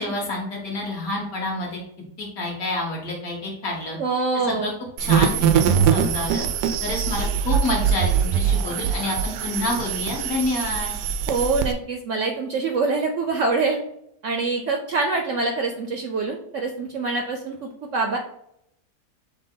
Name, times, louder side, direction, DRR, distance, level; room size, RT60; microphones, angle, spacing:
voice 1, 0.0-1.8 2.2-4.0 4.5-4.7 5.0-6.4 6.8-10.9, left 2 dB, 60° left, -2 dB, 1.9 m, -28 dB
voice 2, 4.0-4.7 11.3-13.8 14.2-18.2, right 3 dB, 65° right, 3 dB, 0.8 m, -25 dB
sound 1, 5.0-11.7, right 7 dB, 90° right, 1.2 m, -22 dB
6.4 x 2.2 x 3.7 m, 0.78 s
omnidirectional pair, 1.8 m